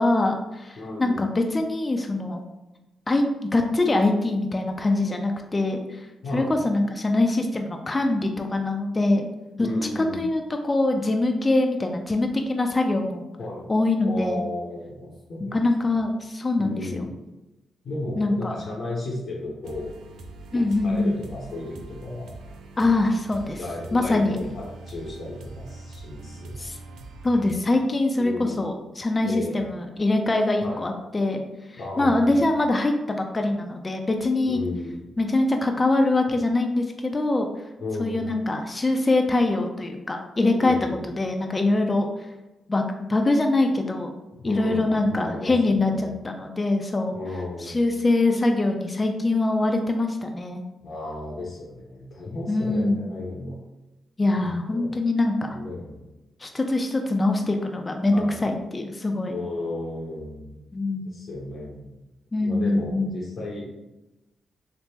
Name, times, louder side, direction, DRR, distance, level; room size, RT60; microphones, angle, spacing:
voice 1, 0.0-2.4 3.1-3.2 3.5-6.1 6.3-9.3 9.6-9.7 10.0-13.3 13.7-14.5 15.4-17.1 18.2-18.5 20.5-21.2 22.8-23.6 23.9-24.4 26.6-26.8 27.2-31.4 31.7-34.6 35.2-37.5 38.0-40.8 41.2-42.1 42.7-44.1 44.4-47.2 47.6-50.6 52.5-53.0 54.2-55.6 56.4-59.4 60.7-61.1 62.3-63.2, left 2 dB, 30° left, 4 dB, 0.4 m, -23 dB
voice 2, 0.8-1.2 6.2-6.6 9.6-10.2 13.4-13.7 14.0-15.6 16.6-17.1 17.8-19.9 20.7-22.3 23.5-27.0 28.2-28.6 29.2-29.6 30.6-30.8 31.8-32.3 34.5-35.1 37.8-38.3 40.6-41.0 44.3-46.1 47.1-47.8 50.8-53.6 54.4-54.9 55.4-56.0 58.1-58.4 59.3-60.6 61.0-61.9 62.4-63.7, left 2 dB, 70° left, -5 dB, 0.7 m, -34 dB
sound 1, 19.6-27.6, right 2 dB, 85° right, 0.3 m, -42 dB
3.4 x 2.0 x 3.0 m, 1.0 s
supercardioid pair, 55°, 0 cm